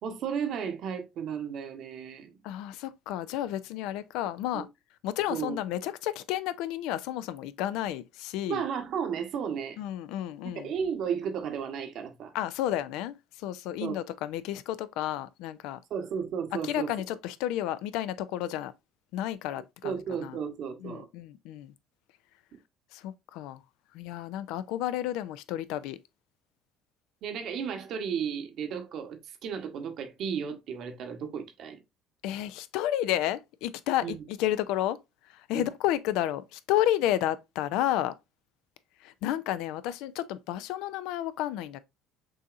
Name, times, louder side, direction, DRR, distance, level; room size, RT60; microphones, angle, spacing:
voice 1, 0.0-2.3 4.5-4.6 5.3-5.6 8.5-9.8 10.4-12.3 13.8-14.0 15.9-16.9 19.8-21.1 27.2-31.8 34.0-34.2 35.5-35.7, right 7 dB, 60° right, 1.0 m, -34 dB
voice 2, 2.4-4.7 5.0-8.6 9.8-10.7 12.3-15.8 16.6-18.7 19.1-20.4 20.8-21.7 22.9-23.6 23.9-26.0 32.2-35.0 35.5-38.1 39.0-41.8, left 12 dB, 70° left, 0.4 m, -31 dB
6.2 x 2.8 x 2.5 m
hypercardioid pair, 70°, 0 cm